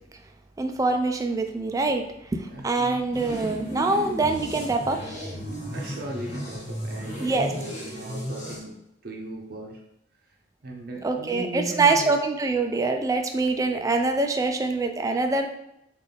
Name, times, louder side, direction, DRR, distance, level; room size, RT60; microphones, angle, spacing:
voice 1, 0.6-2.0 2.3-5.0 7.2-7.5 11.0-15.5, right 3 dB, 20° right, 5 dB, 0.3 m, -24 dB
voice 2, 2.4-3.1 5.7-8.7 9.0-9.8 10.6-12.1, right 1 dB, 55° right, -1 dB, 0.6 m, -37 dB
sound 1, 3.1-8.6, equal, 40° left, 1.2 m, -34 dB
3.4 x 2.5 x 3.8 m, 0.82 s
head